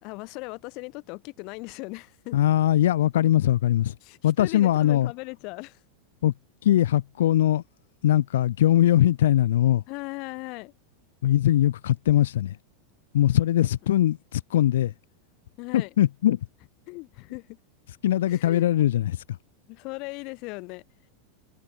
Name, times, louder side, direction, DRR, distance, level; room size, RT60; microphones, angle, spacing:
voice 1, 0.0-2.4 4.0-5.8 9.9-10.7 15.6-15.9 16.9-17.6 18.3-18.7 19.7-20.8, left 28 dB, 45° left, 4.0 m, -38 dB
voice 2, 2.3-3.9 4.2-5.1 6.2-6.3 6.6-7.6 8.0-9.8 11.2-12.6 13.1-14.9 15.7-16.4 18.0-19.4, left 12 dB, 90° left, 0.8 m, -21 dB
supercardioid pair, 155°, 0 cm